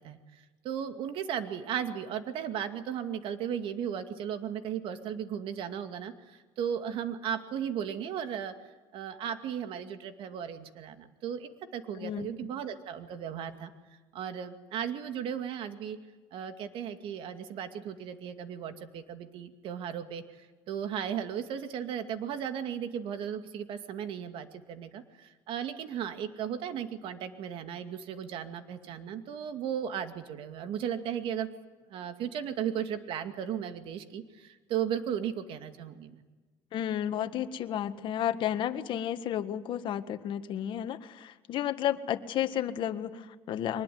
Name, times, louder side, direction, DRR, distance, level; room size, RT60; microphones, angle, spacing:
voice 1, 0.0-8.5 8.9-13.7 14.1-16.0 16.3-31.5 31.9-36.2, right 9 dB, 65° right, 9 dB, 2.3 m, -36 dB
voice 2, 36.7-43.8, left 10 dB, 60° left, 10 dB, 1.7 m, -32 dB
23.5 x 20.5 x 9.5 m, 1.3 s
cardioid pair, 115°, 10 cm